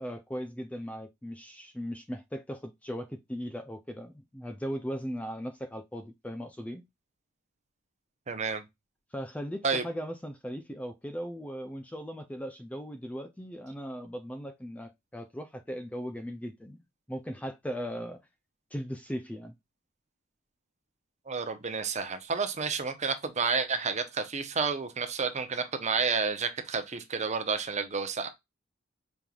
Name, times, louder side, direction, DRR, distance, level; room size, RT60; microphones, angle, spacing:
voice 1, 0.0-6.8 9.1-16.8 17.1-18.2 18.7-19.5, equal, 5° left, 0.4 m, -38 dB
voice 2, 8.3-8.6 9.6-9.8 21.3-28.3, right 5 dB, 35° right, 0.7 m, -30 dB
5.2 x 3.1 x 2.3 m
head